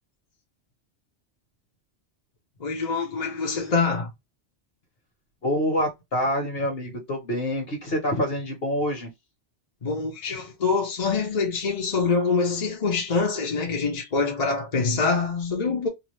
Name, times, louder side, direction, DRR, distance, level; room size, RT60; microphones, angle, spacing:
voice 1, 2.6-4.1 9.8-15.9, left 4 dB, 40° left, 0.9 m, -25 dB
voice 2, 5.4-9.1, left 1 dB, 60° left, 1.4 m, -26 dB
2.8 x 2.4 x 3.0 m
omnidirectional pair, 1.2 m